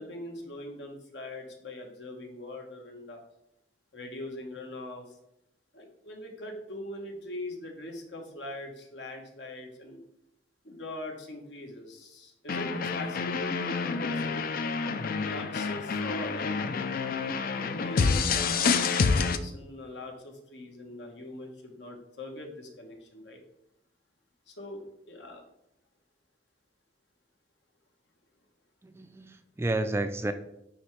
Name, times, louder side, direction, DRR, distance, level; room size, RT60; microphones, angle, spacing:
voice 1, 0.0-3.2 3.9-5.0 5.7-10.0 10.6-14.5 15.2-16.7 17.5-23.4 24.5-25.4, left 1 dB, 75° left, 2 dB, 1.3 m, -41 dB
sound 1, 12.5-19.4, left 5 dB, 55° left, 0.4 m, -28 dB
voice 2, 28.8-30.3, right 2 dB, 15° right, 9 dB, 0.3 m, -31 dB
9.4 x 3.3 x 3.2 m, 0.83 s
head